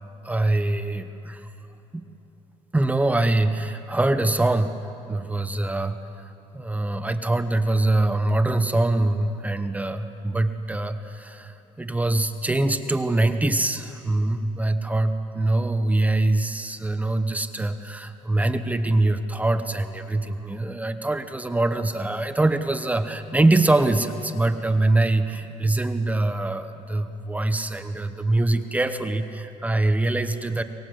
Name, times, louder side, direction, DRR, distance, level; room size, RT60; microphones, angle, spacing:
voice 1, 0.2-1.5 1.9-2.0 2.7-4.7 5.1-30.6, right 2 dB, 10° right, 9 dB, 0.9 m, -24 dB
24.0 x 20.5 x 7.8 m, 2.9 s
cardioid pair, 120°, 14 cm